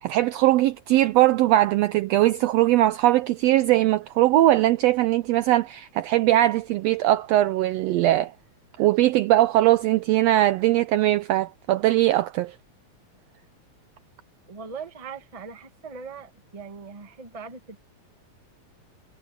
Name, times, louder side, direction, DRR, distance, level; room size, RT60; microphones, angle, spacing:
voice 1, 0.0-8.3 8.8-12.5, right 15 dB, 80° right, 1.5 m, -20 dB
voice 2, 14.5-17.8, right 5 dB, 20° right, 0.9 m, -40 dB
omnidirectional pair, 3.4 m